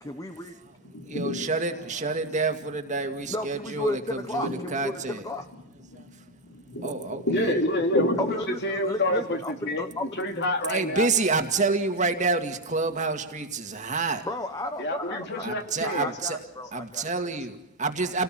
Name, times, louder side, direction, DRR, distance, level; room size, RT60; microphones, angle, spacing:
voice 1, 0.0-0.5 3.3-5.5 8.2-10.1 14.2-15.5 15.8-17.1, left 1 dB, 15° left, 8 dB, 1.2 m, -33 dB
sound 1, 0.6-10.5, left 1 dB, 80° left, 5.6 m, -35 dB
voice 2, 1.1-5.2 5.9-6.1 6.8-7.6 10.7-14.3 15.4-16.4 16.7-18.2, right 3 dB, 35° right, 6 dB, 2.1 m, -28 dB
voice 3, 7.3-9.8 10.2-11.1 14.8-16.1, left 1 dB, 55° left, 4 dB, 3.0 m, -28 dB
29.0 x 18.5 x 7.7 m, 0.92 s
head